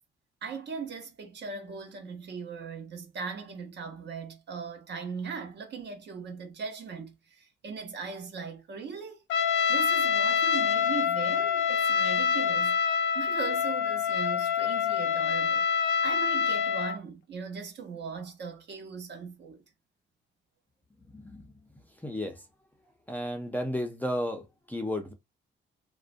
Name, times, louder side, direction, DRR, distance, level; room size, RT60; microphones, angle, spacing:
voice 1, 0.4-9.2 9.7-15.7 16.0-19.6, right 5 dB, 60° right, 0.9 m, -39 dB
Trumpet, 9.3-17.0, left 7 dB, 70° left, 0.4 m, -26 dB
voice 2, 21.1-21.5 22.0-22.4 23.1-25.1, left 1 dB, 10° left, 0.4 m, -33 dB
2.4 x 2.1 x 2.5 m
cardioid pair, 110°, 21 cm